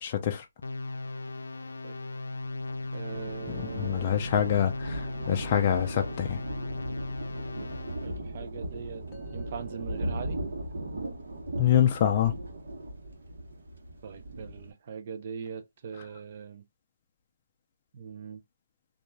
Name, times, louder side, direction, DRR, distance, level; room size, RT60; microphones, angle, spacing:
voice 1, 0.0-0.5 3.5-6.4 11.6-12.3 16.0-16.1, left 10 dB, 30° left, 0.4 m, -26 dB
sound 1, 0.6-8.2, left 2 dB, 85° left, 0.5 m, -37 dB
Thunder, 2.4-14.7, right 1 dB, 70° right, 0.9 m, -38 dB
voice 2, 2.9-4.3 7.6-9.0 9.3-10.4 14.0-16.6 17.9-18.4, right 6 dB, 40° right, 0.5 m, -41 dB
sound 2, 9.1-13.2, right 2 dB, 10° left, 1.1 m, -57 dB
3.0 x 2.4 x 2.2 m
hypercardioid pair, 165°, 0 cm